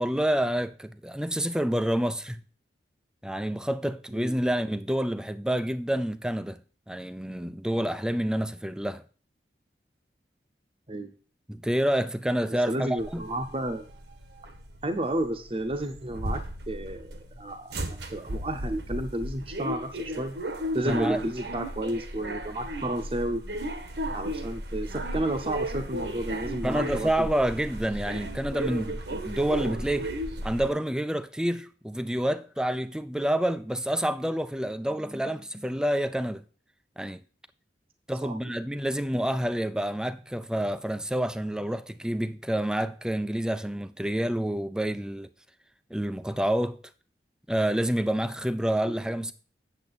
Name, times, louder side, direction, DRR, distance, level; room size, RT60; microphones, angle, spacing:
voice 1, 0.0-2.4 3.2-6.6 6.9-9.0 11.5-13.2 20.8-21.2 26.6-30.1 30.4-36.4 37.0-37.2 38.1-45.3 45.9-46.8 47.5-49.3, right 1 dB, 5° right, 0.5 m, -28 dB
voice 2, 12.7-13.9 14.8-16.4 16.7-20.3 20.7-23.4 24.1-27.3 38.2-38.4 48.9-49.0, right 1 dB, 30° right, 0.9 m, -31 dB
sound 1, 13.0-30.7, right 1 dB, 75° right, 1.4 m, -35 dB
8.7 x 7.3 x 4.1 m
head